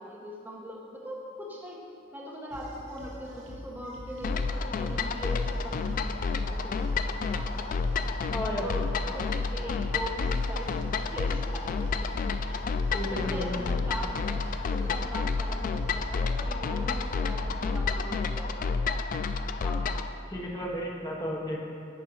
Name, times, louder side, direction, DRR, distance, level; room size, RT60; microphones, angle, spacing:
voice 1, 0.0-1.8 2.1-8.0 8.6-12.6 13.1-19.0, equal, 10° right, -4 dB, 1.1 m, -41 dB
sound 1, 2.5-17.8, equal, 65° right, 1.1 m, -44 dB
sound 2, 4.2-20.1, left 4 dB, 45° left, 0.3 m, -30 dB
voice 2, 8.3-8.7 9.1-9.2 12.9-13.6 19.6-19.8 20.3-21.6, left 1 dB, 20° left, -2 dB, 1.0 m, -33 dB
11.0 x 4.4 x 4.6 m, 2.6 s
head